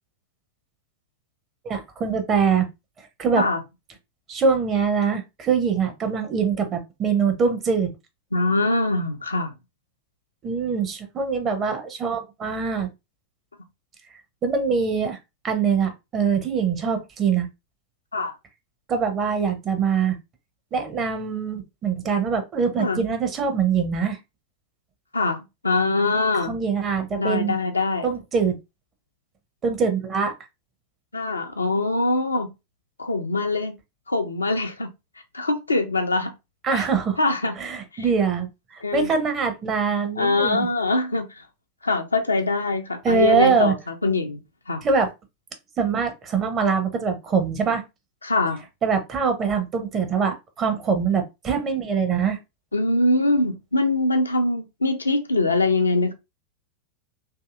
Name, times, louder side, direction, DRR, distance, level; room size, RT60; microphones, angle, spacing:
voice 1, 1.6-2.7 3.2-3.4 4.3-7.9 10.4-12.9 14.4-15.2 15.4-17.5 18.9-20.2 20.7-24.2 26.4-27.6 28.0-28.6 29.6-30.3 36.6-37.2 37.6-40.7 43.0-43.7 44.8-45.1 45.8-47.8 48.8-52.4, right 6 dB, 25° right, 0.7 m, -23 dB
voice 2, 8.3-9.5 18.1-18.3 22.8-23.0 25.1-26.5 27.2-28.1 31.1-32.5 33.0-33.7 34.1-34.9 35.3-36.3 36.7-36.9 37.2-37.5 37.9-38.1 38.8-39.1 40.2-41.5 41.8-44.8 48.2-48.6 52.7-56.1, left 2 dB, 80° left, 0.5 m, -23 dB
2.7 x 2.6 x 2.4 m
figure-of-eight pair, 90°, 0 cm